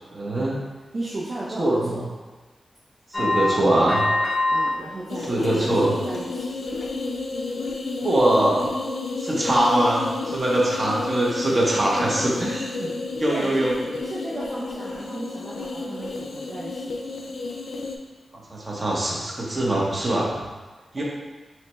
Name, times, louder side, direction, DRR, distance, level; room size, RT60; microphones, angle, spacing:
voice 1, 0.1-0.6 1.6-2.0 3.2-4.0 5.3-5.9 8.0-8.7 9.2-14.0 18.5-20.3 20.9-21.0, right 1 dB, 35° right, -4 dB, 1.0 m, -22 dB
voice 2, 0.9-2.1 4.5-6.5 13.3-13.7 14.0-17.0 20.9-21.0, right 2 dB, 55° right, -7 dB, 0.6 m, -34 dB
sound 1, 3.1-4.7 5.1-5.7 6.1-6.3 6.8-6.9, left 2 dB, 30° left, 0.6 m, -24 dB
sound 2, 5.1-18.0, left 3 dB, 85° left, 0.4 m, -31 dB
5.6 x 2.3 x 3.1 m, 1.2 s
wide cardioid pair, 85°, 0 cm